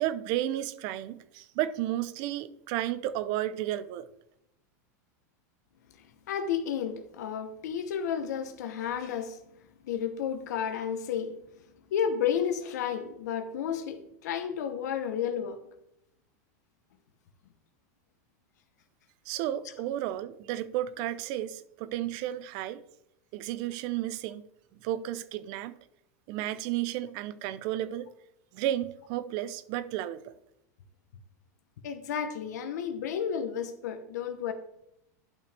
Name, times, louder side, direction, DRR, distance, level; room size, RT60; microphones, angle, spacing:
voice 1, 0.0-4.1 19.3-22.8 23.3-24.4 24.8-25.7 26.3-28.1 28.5-30.3, right 13 dB, 50° right, 0.6 m, -32 dB
voice 2, 6.3-9.4 9.8-11.4 11.9-15.6 31.8-34.5, left 8 dB, 80° left, 0.9 m, -32 dB
11.0 x 5.7 x 3.4 m
supercardioid pair, 135°, 9 cm